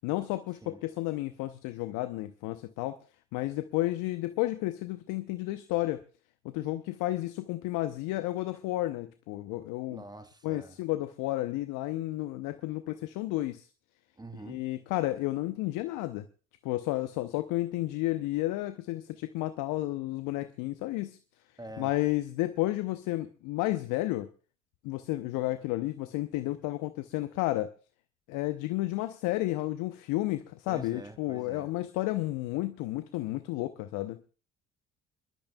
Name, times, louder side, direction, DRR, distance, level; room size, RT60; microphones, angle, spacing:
voice 1, 0.0-3.0 3.3-6.0 6.4-10.0 10.4-13.7 14.5-16.3 16.6-21.2 21.8-24.3 24.8-27.7 28.3-34.2, left 17 dB, 70° left, 0.8 m, -32 dB
voice 2, 9.9-10.8 14.2-14.6 21.6-22.0 30.7-31.7, right 1 dB, 10° right, 1.5 m, -45 dB
28.0 x 12.0 x 2.3 m
hypercardioid pair, 55°, 34 cm